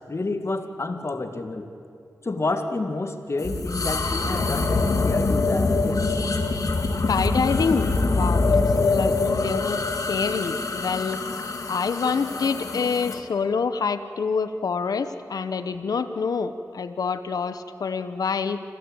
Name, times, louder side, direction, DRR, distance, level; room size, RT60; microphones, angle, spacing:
voice 1, 0.1-1.7 2.2-6.1, left 2 dB, 45° left, 6 dB, 2.2 m, -29 dB
sound 1, 3.4-13.2, left 3 dB, 65° left, 2.1 m, -24 dB
voice 2, 7.1-9.8 10.1-11.2 11.7-18.6, left 5 dB, 80° left, 10 dB, 1.0 m, -26 dB
26.0 x 15.5 x 8.8 m, 2.4 s
cardioid pair, 55°, 6 cm